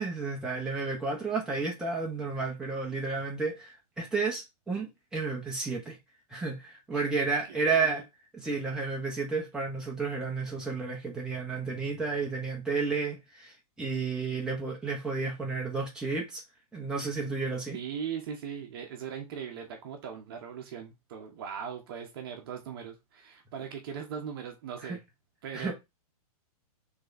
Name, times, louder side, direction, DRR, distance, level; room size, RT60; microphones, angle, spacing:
voice 1, 0.0-6.0 6.3-8.0 8.3-16.4 16.7-17.8 24.8-25.0 25.5-25.7, right 4 dB, 5° right, 1.0 m, -32 dB
voice 2, 7.5-8.0 17.7-25.0 25.4-25.7, right 7 dB, 40° right, 1.0 m, -39 dB
3.9 x 3.4 x 4.0 m
hypercardioid pair, 175°, 20 cm